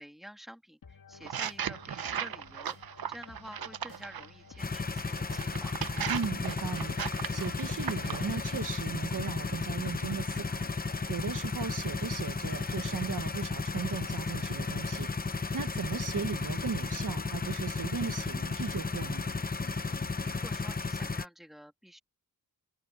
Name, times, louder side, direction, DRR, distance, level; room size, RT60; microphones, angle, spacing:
voice 1, 0.0-2.8 3.1-5.8 20.1-22.0, equal, ahead, 2.3 m, -49 dB
sound 1, 0.8-20.5, left 5 dB, 65° left, 2.5 m, -53 dB
sound 2, 1.2-4.3 5.0-8.3, right 9 dB, 85° right, 0.9 m, -37 dB
sound 3, 4.6-21.2, left 4 dB, 25° left, 0.8 m, -34 dB
voice 2, 6.1-19.3, right 6 dB, 60° right, 1.4 m, -37 dB
wide cardioid pair, 155°, 35 cm